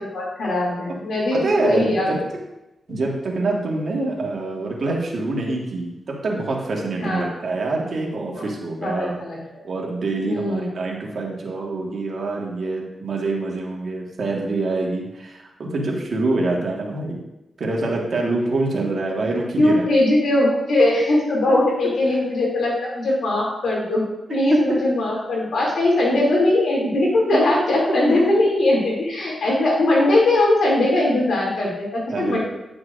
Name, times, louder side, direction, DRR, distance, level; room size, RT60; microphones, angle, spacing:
voice 1, 0.0-2.2 7.0-7.2 8.3-8.4 8.8-9.4 10.2-10.6 19.6-32.4, left 1 dB, 80° left, -4 dB, 2.8 m, -20 dB
voice 2, 1.3-2.2 2.9-9.2 9.6-17.2 17.6-20.0 21.5-21.6 24.5-24.8 27.5-27.6 32.1-32.4, right 2 dB, 65° right, -1 dB, 1.7 m, -25 dB
10.0 x 6.0 x 2.6 m, 0.94 s
cardioid pair, 70°, 0 cm